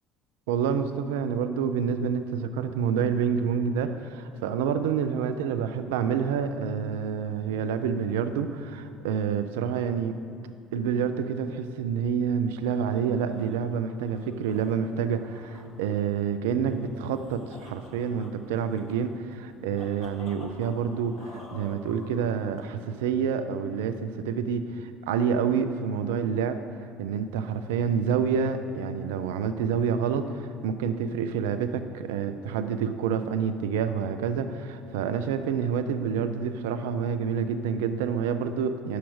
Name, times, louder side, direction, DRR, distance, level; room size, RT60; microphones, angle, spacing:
voice 1, 0.5-10.2 10.7-26.6 27.0-39.0, right 7 dB, 75° right, 10 dB, 0.4 m, -28 dB
sound 1, 12.8-22.9, left 2 dB, 50° left, 1.1 m, -51 dB
10.0 x 7.2 x 3.1 m, 2.5 s
hypercardioid pair, 65°, 0 cm